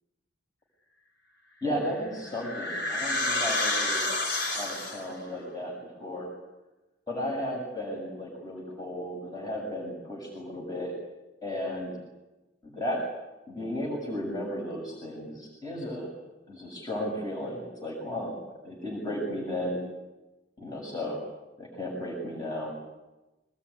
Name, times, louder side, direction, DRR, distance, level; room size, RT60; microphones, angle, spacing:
voice 1, 1.6-4.1 4.5-5.7 6.0-6.3 7.1-10.9 11.4-12.0 12.6-13.1 13.5-16.1 16.5-19.8 20.6-21.2 21.6-22.7, equal, 20° left, -2 dB, 7.3 m, -34 dB
sound 1, 1.8-5.2, left 2 dB, 60° left, 7.5 m, -29 dB
25.5 x 21.5 x 10.0 m, 1.0 s
head